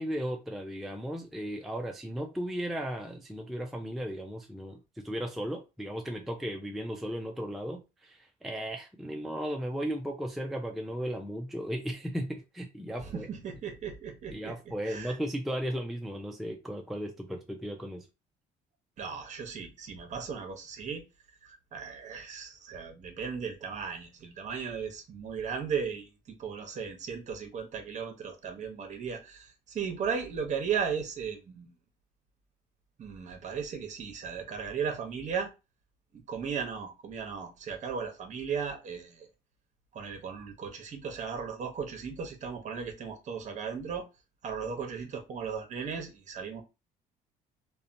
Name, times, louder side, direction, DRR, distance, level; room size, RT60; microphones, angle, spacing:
voice 1, 0.0-13.3 14.3-18.1, equal, ahead, 0.3 m, -36 dB
voice 2, 13.0-14.6 14.8-15.2 19.0-21.0 21.4-26.1 26.4-31.7 33.0-35.5 36.1-39.3 39.9-44.1 44.4-46.6, right 6 dB, 45° right, 0.8 m, -36 dB
2.7 x 2.1 x 2.5 m
cardioid pair, 110°, 17 cm